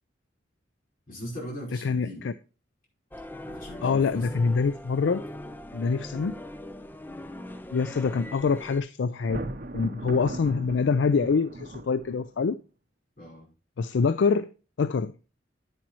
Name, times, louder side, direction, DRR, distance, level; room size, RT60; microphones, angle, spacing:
voice 1, 1.1-2.2 3.4-4.3 13.2-13.5, left 1 dB, 50° left, 5.0 m, -39 dB
voice 2, 1.8-2.3 3.8-5.2 5.7-6.3 7.7-9.4 9.7-12.6 13.8-14.5 14.8-15.1, left 5 dB, 80° left, 0.4 m, -25 dB
sound 1, 3.1-8.8, left 1 dB, 10° left, 0.5 m, -41 dB
Thunder, 9.2-12.5, right 1 dB, 50° right, 0.8 m, -38 dB
10.0 x 9.5 x 3.1 m
head